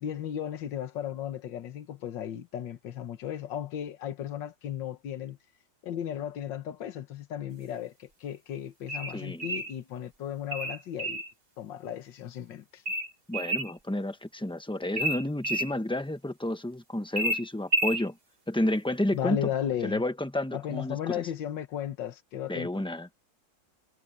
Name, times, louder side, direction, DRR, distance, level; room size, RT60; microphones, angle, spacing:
voice 1, 0.0-5.4 5.8-11.2 11.6-12.8 19.1-20.0 20.5-22.9, left 10 dB, 75° left, 1.9 m, -35 dB
sound 1, 8.9-9.7 10.5-11.3 12.9-13.7 15.0-15.7 17.2-18.1, right 1 dB, 30° right, 2.3 m, -30 dB
voice 2, 9.1-9.5 13.3-18.2 18.5-19.4 19.8-21.2 22.5-23.1, left 1 dB, 5° left, 0.9 m, -31 dB
omnidirectional pair, 2.0 m